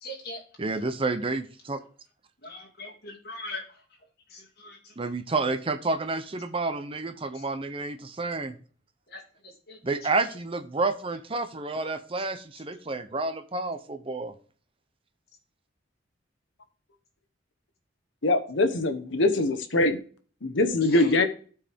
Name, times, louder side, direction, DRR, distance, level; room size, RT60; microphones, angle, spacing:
voice 1, 0.0-0.4 2.4-3.6 4.3-4.8 7.3-7.4 9.1-9.2 9.7-9.8 20.9-21.1, left 2 dB, 55° left, -1 dB, 2.4 m, -40 dB
voice 2, 0.6-1.8 5.0-8.5 9.8-14.3, right 3 dB, 30° right, 10 dB, 0.7 m, -30 dB
voice 3, 18.2-20.0 20.4-21.2, left 2 dB, 75° left, 7 dB, 1.1 m, -23 dB
13.0 x 4.7 x 3.5 m, 0.42 s
head